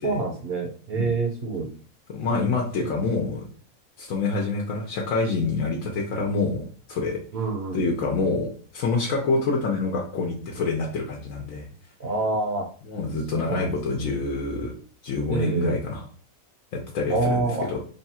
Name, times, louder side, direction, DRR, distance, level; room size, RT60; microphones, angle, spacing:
voice 1, 0.0-1.7 7.3-7.8 12.0-12.7 13.3-14.2 15.3-15.8 17.1-17.7, right 3 dB, 55° right, 1 dB, 0.8 m, -27 dB
voice 2, 2.1-3.5 4.0-7.2 7.7-11.7 12.9-14.7 15.0-16.0 16.7-17.4 17.7-17.8, left 3 dB, 75° left, 0 dB, 1.1 m, -26 dB
3.4 x 2.3 x 4.1 m, 0.41 s
omnidirectional pair, 1.4 m